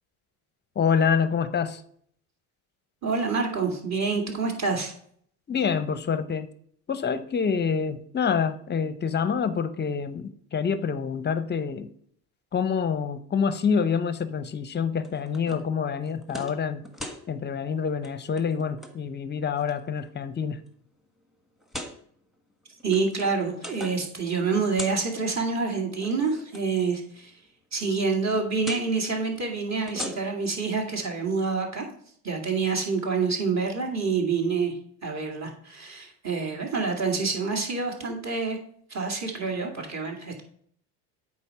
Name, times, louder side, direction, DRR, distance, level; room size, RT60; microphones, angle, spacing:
voice 1, 0.8-1.8 5.5-6.5 6.9-11.9 12.5-16.8 17.3-20.6, left 6 dB, 20° left, 13 dB, 0.6 m, -27 dB
voice 2, 3.0-4.9 22.8-27.3 27.7-31.9 32.2-34.7 35.0-38.6 38.9-40.4, right 4 dB, 35° right, 2 dB, 2.2 m, -27 dB
sound 1, 15.0-15.6 16.0-16.6 16.8-17.2 17.9-18.1 18.4-18.9 19.6-20.1 20.7-20.8 21.6-21.9 22.7-24.1 24.4-25.1 25.9-26.6 28.6-28.9 29.7-30.5, left 1 dB, ahead, 1.3 m, -39 dB
8.3 x 4.3 x 5.5 m, 0.63 s
supercardioid pair, 95°, 47 cm